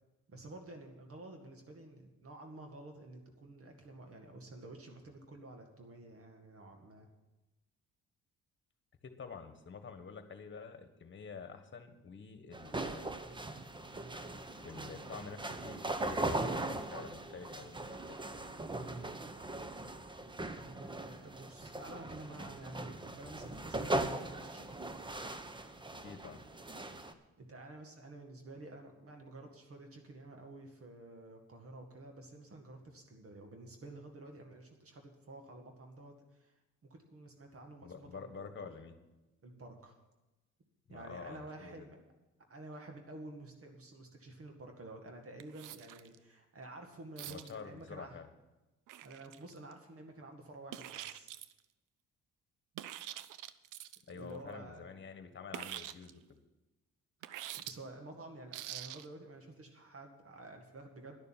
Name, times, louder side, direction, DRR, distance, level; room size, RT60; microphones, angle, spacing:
voice 1, 0.3-7.1 20.6-24.8 27.4-36.5 36.9-38.7 39.4-40.0 40.9-42.0 42.5-48.2 49.0-51.3 54.1-54.9 57.3-61.2, right 2 dB, 50° right, 4 dB, 1.9 m, -51 dB
voice 2, 9.0-13.1 14.4-18.2 26.0-26.4 37.8-39.0 40.9-41.9 47.3-48.3 54.1-56.4, left 5 dB, 40° left, 8 dB, 1.5 m, -48 dB
sound 1, 12.5-27.1, right 2 dB, 15° right, 0.9 m, -40 dB
sound 2, 45.4-46.2 47.2-47.5 48.9-49.7 50.7-51.6 52.7-54.1 55.5-56.1 57.2-57.7 58.5-59.1, right 12 dB, 90° right, 0.6 m, -45 dB
11.0 x 6.8 x 8.8 m, 1.0 s
cardioid pair, 90°, 30 cm